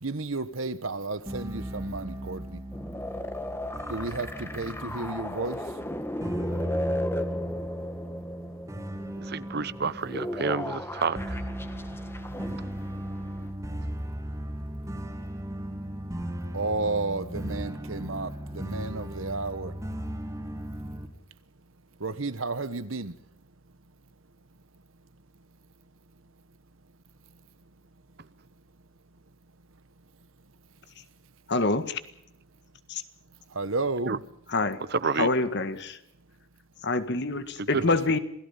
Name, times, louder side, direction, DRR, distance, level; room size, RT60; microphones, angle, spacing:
voice 1, 0.0-2.6 3.9-5.8 16.5-19.8 22.0-23.2 33.5-34.2 37.7-38.2, right 3 dB, 70° right, 1.3 m, -32 dB
sound 1, 1.3-21.1, equal, 15° right, 2.9 m, -37 dB
sound 2, 2.7-13.5, left 1 dB, 10° left, 1.5 m, -36 dB
voice 2, 9.2-11.4 34.1-34.2 34.9-35.3 37.6-37.8, right 4 dB, 50° right, 0.9 m, -29 dB
voice 3, 31.5-32.0 32.9-33.0 34.5-34.9 35.1-36.0 36.8-38.2, left 3 dB, 55° left, 1.7 m, -26 dB
27.5 x 17.5 x 5.7 m
head